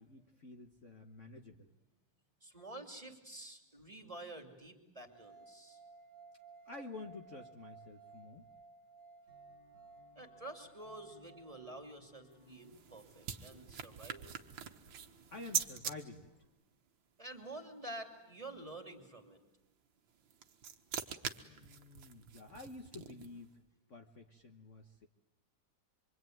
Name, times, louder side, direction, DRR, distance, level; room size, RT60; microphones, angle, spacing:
voice 1, 0.0-1.7 6.6-8.5 15.3-16.3 21.4-23.5 23.9-25.1, left 3 dB, 45° left, 4 dB, 1.5 m, -50 dB
voice 2, 2.4-5.8 10.2-14.3 17.2-19.4, right 2 dB, 15° right, 3 dB, 2.7 m, -49 dB
sound 1, 5.1-12.2, right 4 dB, 75° right, 2.1 m, -58 dB
Acoustic guitar, 9.3-16.4, left 1 dB, 75° left, 5.3 m, -68 dB
sound 2, 12.3-15.9 20.1-23.4, right 8 dB, 90° right, 2.0 m, -43 dB
25.5 x 24.0 x 9.3 m, 0.97 s
omnidirectional pair, 2.1 m